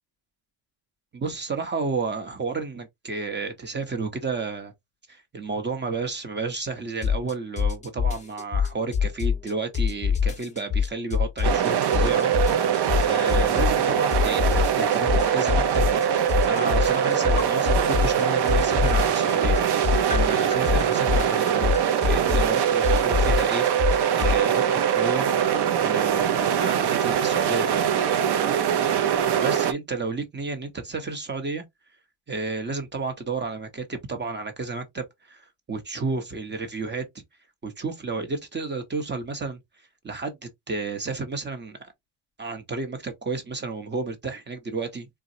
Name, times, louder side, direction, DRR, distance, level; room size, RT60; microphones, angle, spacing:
voice 1, 1.1-4.7 5.1-15.9 16.5-19.6 20.1-21.7 22.0-23.8 24.1-25.3 25.8-27.9 29.4-31.6 32.3-37.2 37.6-39.6 40.0-40.4 40.7-41.9 42.4-45.1, right 4 dB, 20° right, 0.9 m, -31 dB
sound 1, 7.0-7.3 7.6-9.5 9.7-11.7 11.9-13.9 14.1-18.2 18.5-24.4, left 7 dB, 15° left, 0.7 m, -24 dB
sound 2, 11.4-29.7, right 8 dB, 55° right, 0.7 m, -23 dB
3.9 x 2.3 x 2.7 m
cardioid pair, 115°, 48 cm